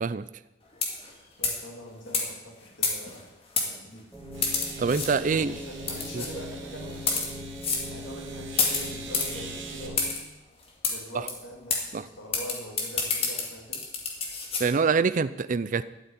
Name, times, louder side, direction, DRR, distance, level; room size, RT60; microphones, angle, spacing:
sound 1, 0.7-1.1 1.4-1.6 2.1-2.3 2.8-3.2 3.6-3.7 4.4-5.1 5.9-6.3 6.9-7.3 7.6-7.9 8.6-9.3 10.0-10.2 10.8-11.0 11.3-11.4 11.7-11.8 12.3-14.6, left 4 dB, 30° left, 2.2 m, -28 dB
voice 1, 1.4-3.3 3.6-4.1 5.3-7.3 7.9-10.2 10.9-13.8, equal, 70° left, -1 dB, 3.2 m, -43 dB
sound 2, 3.5-3.6 4.3-9.9, right 5 dB, 70° right, 2.7 m, -45 dB
sound 3, 4.1-10.1, equal, 10° left, 2.0 m, -40 dB
voice 2, 4.8-5.5 6.1-6.2 11.9-12.1 14.6-15.8, right 5 dB, 40° right, 14 dB, 0.4 m, -25 dB
12.0 x 7.0 x 9.5 m, 0.98 s
head